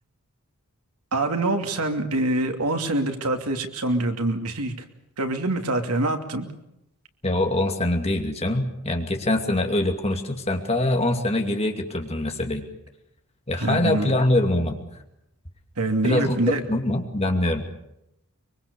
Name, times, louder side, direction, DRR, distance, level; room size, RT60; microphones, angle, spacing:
voice 1, 1.1-4.8 5.2-6.5 13.5-14.1 15.8-16.6, right 2 dB, 85° right, 5 dB, 2.8 m, -25 dB
voice 2, 7.2-12.7 13.5-14.8 16.0-17.7, left 1 dB, 30° left, 4 dB, 2.6 m, -24 dB
24.5 x 23.5 x 7.0 m, 0.82 s
head